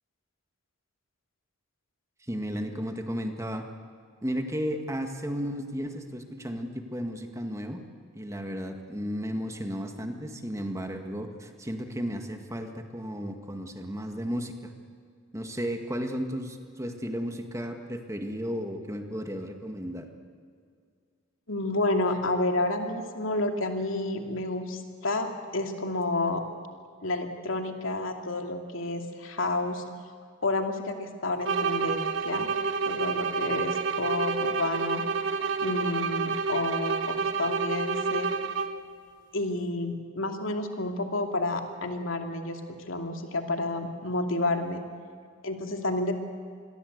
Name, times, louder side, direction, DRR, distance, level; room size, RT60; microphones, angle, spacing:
voice 1, 2.3-3.6 4.2-7.8 8.2-14.7 15.3-20.1, equal, 15° right, 5 dB, 1.9 m, -34 dB
voice 2, 21.5-26.4 27.0-29.8 30.4-32.5 32.9-35.0 35.6-38.3 39.3-44.8 45.4-46.2, left 2 dB, 80° left, 4 dB, 2.6 m, -30 dB
sound 1, 31.4-38.9, right 5 dB, 65° right, 1.2 m, -29 dB
27.0 x 21.5 x 8.1 m, 2.2 s
head